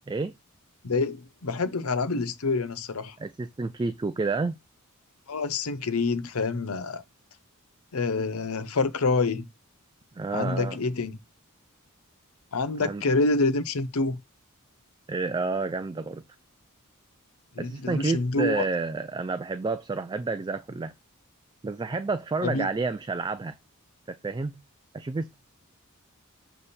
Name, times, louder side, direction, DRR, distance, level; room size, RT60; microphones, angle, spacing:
voice 1, 0.8-3.1 5.3-7.0 7.9-9.5 10.3-11.2 12.5-14.2 17.6-18.6 22.4-22.7, left 3 dB, 75° left, 0.7 m, -27 dB
voice 2, 3.2-4.6 10.2-10.8 12.8-13.0 15.1-16.2 17.6-20.9 21.6-23.6 24.1-24.5 24.9-25.4, right 3 dB, 20° right, 0.3 m, -30 dB
7.0 x 3.5 x 4.1 m
head